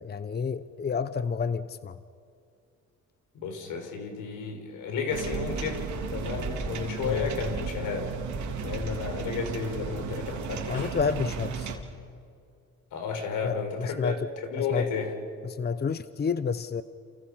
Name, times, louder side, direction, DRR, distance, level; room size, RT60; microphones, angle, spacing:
voice 1, 0.0-2.0 7.0-7.3 10.7-11.8 13.4-14.3 14.6-14.9 15.4-16.8, left 5 dB, 35° left, 13 dB, 0.8 m, -30 dB
voice 2, 3.3-8.1 8.5-11.2 12.9-15.1, left 5 dB, 85° left, 5 dB, 4.9 m, -33 dB
sound 1, 5.1-11.8, right 6 dB, 70° right, 3.4 m, -34 dB
30.0 x 28.5 x 5.7 m, 2.4 s
cardioid pair, 90°, 30 cm